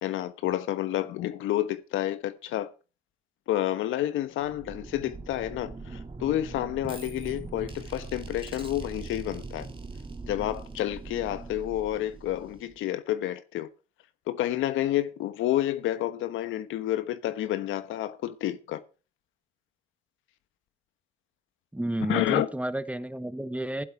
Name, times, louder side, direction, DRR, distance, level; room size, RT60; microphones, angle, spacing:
voice 1, 0.0-2.7 3.5-9.7 10.2-13.7 14.3-18.8 22.1-22.5, left 13 dB, 90° left, 1.1 m, -29 dB
sound 1, 4.4-12.9, right 3 dB, 25° right, 2.0 m, -41 dB
voice 2, 21.7-23.8, right 1 dB, 5° right, 1.0 m, -31 dB
15.0 x 7.9 x 4.7 m
cardioid pair, 90°, 20 cm